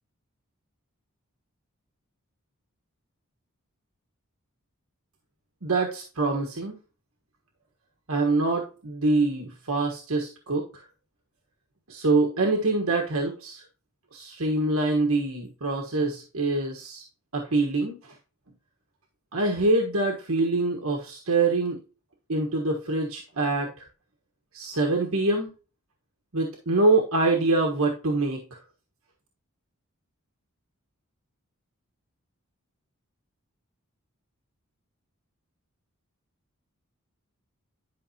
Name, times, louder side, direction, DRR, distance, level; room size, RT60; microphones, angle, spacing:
voice 1, 5.6-6.8 8.1-10.8 11.9-13.6 14.1-17.0 17.3-18.1 19.3-21.8 22.3-23.9 24.5-25.5 26.3-28.6, right 2 dB, 75° right, 1 dB, 1.3 m, -25 dB
11.0 x 5.4 x 2.8 m, 0.36 s
head